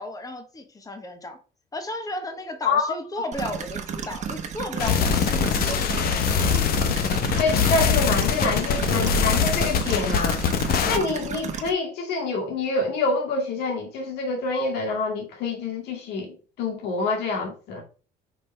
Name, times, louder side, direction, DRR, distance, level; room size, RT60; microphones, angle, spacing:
voice 1, 0.0-1.4 1.7-6.0, left 1 dB, 20° left, 1.3 m, -34 dB
sound 1, 3.3-11.7, right 7 dB, 45° right, 1.1 m, -33 dB
sound 2, 4.8-11.0, left 6 dB, 65° left, 0.9 m, -23 dB
voice 2, 7.4-10.4 10.9-17.8, left 3 dB, 80° left, 2.1 m, -26 dB
5.2 x 3.3 x 5.5 m
cardioid pair, 110°, 17 cm